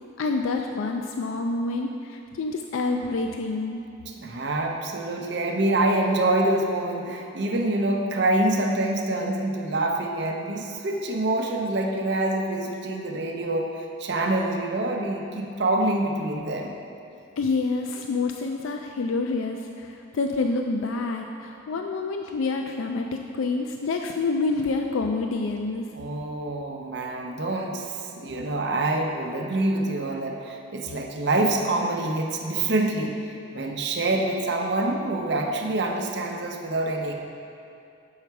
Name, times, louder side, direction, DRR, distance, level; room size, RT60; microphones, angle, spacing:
voice 1, 0.2-3.8 17.4-25.8, left 3 dB, 80° left, 3 dB, 0.4 m, -27 dB
voice 2, 4.1-16.7 25.9-33.2 33.5-37.1, right 2 dB, 55° right, 1 dB, 0.7 m, -26 dB
6.8 x 5.6 x 4.6 m, 2.6 s
head